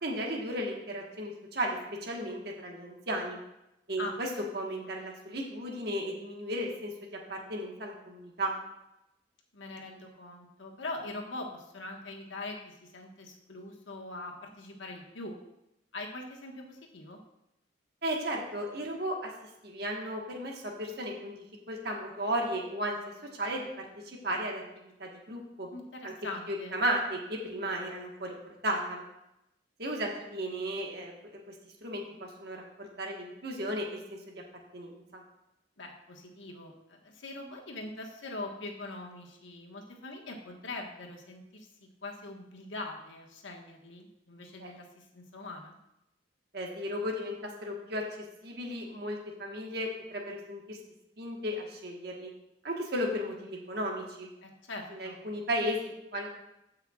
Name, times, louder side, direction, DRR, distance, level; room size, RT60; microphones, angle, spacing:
voice 1, 0.0-3.4 3.9-4.3 4.5-8.5 18.0-19.3 19.6-23.0 23.4-24.6 25.0-25.7 26.0-26.1 26.5-28.3 28.6-29.0 29.8-31.4 31.8-34.4 34.7-35.2 44.6-44.7 46.5-48.0 48.4-50.8 51.2-52.3 52.6-54.3 54.9-56.3, equal, 55° right, 0 dB, 1.4 m, -35 dB
voice 2, 9.5-15.4 15.9-17.2 25.7-26.7 35.8-45.8 54.4-55.2, left 2 dB, 85° left, 1 dB, 1.4 m, -42 dB
15.5 x 5.6 x 2.4 m, 0.87 s
head